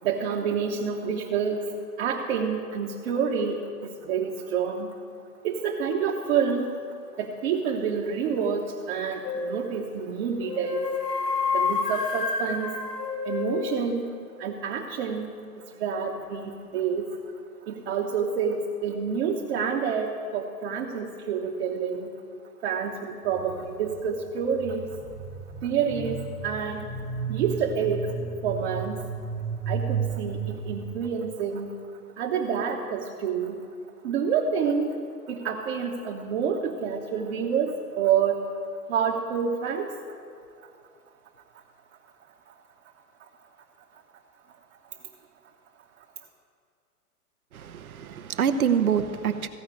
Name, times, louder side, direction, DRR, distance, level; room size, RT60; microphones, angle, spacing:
voice 1, 0.0-5.0 5.4-6.8 7.1-10.9 11.5-12.7 13.2-14.1 14.4-17.2 17.7-22.1 22.6-24.9 25.6-26.8 27.3-28.1 28.4-29.1 29.7-31.8 32.2-33.6 34.0-38.4 38.9-39.9 42.5-42.6 43.2-43.3, right 6 dB, 45° right, -1 dB, 1.2 m, -28 dB
sound 1, 9.2-9.7 10.4-13.9, left 5 dB, 90° left, 1.9 m, -29 dB
sound 2, 23.2-31.0, right 6 dB, 5° right, 1.2 m, -34 dB
voice 2, 47.5-49.5, right 7 dB, 65° right, 10 dB, 1.0 m, -26 dB
15.5 x 5.7 x 8.8 m, 2.4 s
figure-of-eight pair, 120°, 47 cm